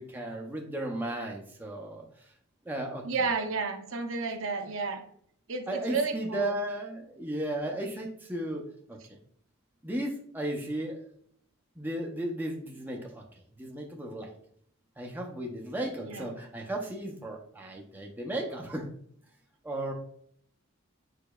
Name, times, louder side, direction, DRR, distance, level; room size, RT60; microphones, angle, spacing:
voice 1, 0.0-2.3 2.6-3.0 4.5-4.7 5.7-9.2 9.8-11.0 11.8-14.3 15.0-18.9 19.6-19.9, right 1 dB, 10° right, 0 dB, 0.5 m, -35 dB
voice 2, 3.0-5.0 5.5-6.6 16.0-16.3, right 4 dB, 60° right, 5 dB, 0.6 m, -31 dB
4.9 x 4.5 x 2.2 m, 0.63 s
head